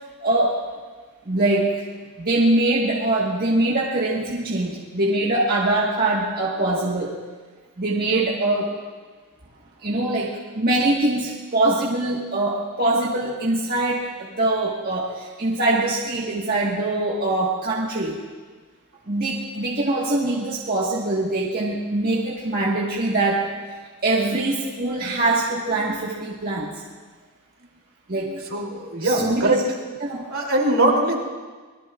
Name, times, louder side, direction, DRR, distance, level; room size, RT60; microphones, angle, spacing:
voice 1, 0.2-0.6 1.3-1.8 2.2-7.2 7.8-8.7 9.8-18.2 19.1-23.5 24.0-26.7 28.1-28.4 29.0-29.6 30.0-30.3, right 2 dB, 45° right, -4 dB, 1.6 m, -23 dB
voice 2, 28.5-29.6 30.3-31.2, right 1 dB, 70° right, -1 dB, 3.2 m, -21 dB
25.5 x 21.0 x 2.5 m, 1.4 s
head